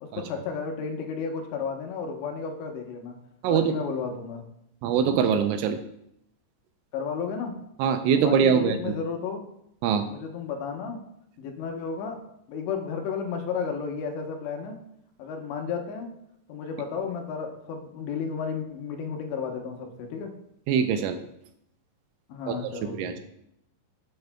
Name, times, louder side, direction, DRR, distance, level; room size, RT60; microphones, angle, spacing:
voice 1, 0.0-3.2 3.5-4.4 6.9-7.5 8.1-9.4 10.1-11.0 11.4-12.2 12.5-14.8 15.2-16.1 16.5-20.3 22.3-23.2, left 6 dB, 75° left, 2 dB, 2.9 m, -33 dB
voice 2, 3.4-3.7 4.8-5.8 7.8-8.9 9.8-10.1 20.7-21.2 22.5-22.6 23.0-23.2, right 7 dB, 85° right, 7 dB, 2.9 m, -23 dB
11.5 x 8.0 x 2.2 m, 0.76 s
omnidirectional pair, 5.5 m